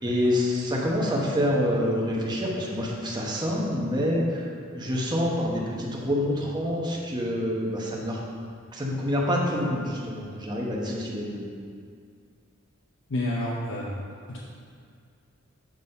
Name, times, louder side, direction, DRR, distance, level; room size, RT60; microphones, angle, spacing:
voice 1, 0.0-8.2 8.7-11.4, equal, 20° right, -3 dB, 1.1 m, -27 dB
voice 2, 13.1-14.0 14.3-14.5, left 1 dB, 65° left, -4 dB, 0.8 m, -29 dB
7.5 x 4.1 x 5.4 m, 2.2 s
head